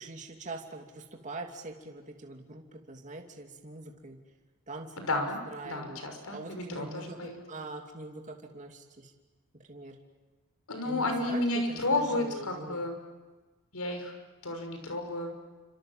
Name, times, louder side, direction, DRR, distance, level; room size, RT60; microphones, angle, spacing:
voice 1, 0.0-4.2 4.7-6.0 6.3-9.1 9.7-10.0 10.8-12.8, right 2 dB, 35° right, 2 dB, 2.8 m, -43 dB
voice 2, 5.0-5.4 5.6-7.4 10.7-13.0 13.7-14.1 14.4-15.3, left 2 dB, 75° left, 5 dB, 6.2 m, -32 dB
29.5 x 26.5 x 7.5 m, 1.3 s
head